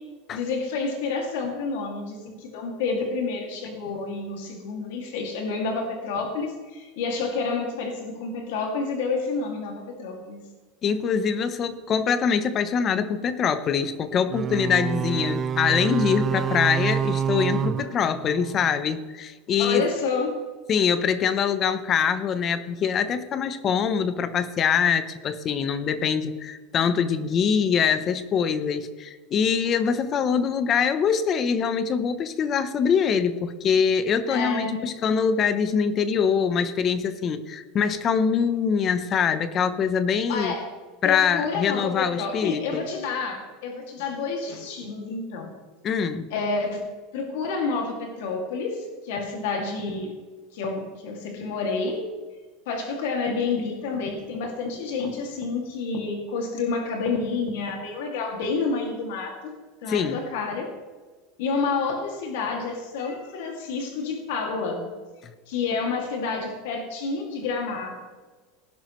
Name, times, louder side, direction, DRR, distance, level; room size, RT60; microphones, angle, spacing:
voice 1, 0.3-10.4 19.6-20.3 34.3-34.8 40.3-40.6 41.0-45.5 46.3-46.8 47.1-50.1 50.5-52.0 52.7-60.7 61.4-64.9 65.5-68.0, left 4 dB, 75° left, 2 dB, 2.4 m, -29 dB
voice 2, 10.8-19.8 20.7-40.5 41.0-42.9 45.8-46.3 59.9-60.2, left 7 dB, 30° left, 13 dB, 0.8 m, -24 dB
sound 1, 14.3-18.8, right 8 dB, 25° right, 0.4 m, -27 dB
18.5 x 11.0 x 3.2 m, 1.3 s
supercardioid pair, 160°, 0 cm